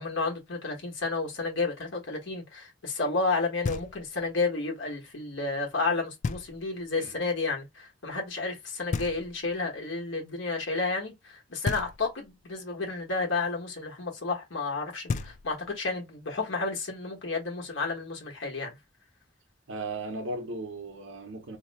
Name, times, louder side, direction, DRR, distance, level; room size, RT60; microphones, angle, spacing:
voice 1, 0.0-18.8, left 3 dB, 80° left, 1.3 m, -31 dB
Knock, 3.6-4.3 6.2-6.9 8.9-9.7 11.6-12.4 14.7-14.8 15.1-15.9, left 4 dB, 40° left, 0.3 m, -34 dB
voice 2, 19.7-21.6, right 2 dB, 85° right, 0.8 m, -36 dB
2.9 x 2.1 x 4.0 m
head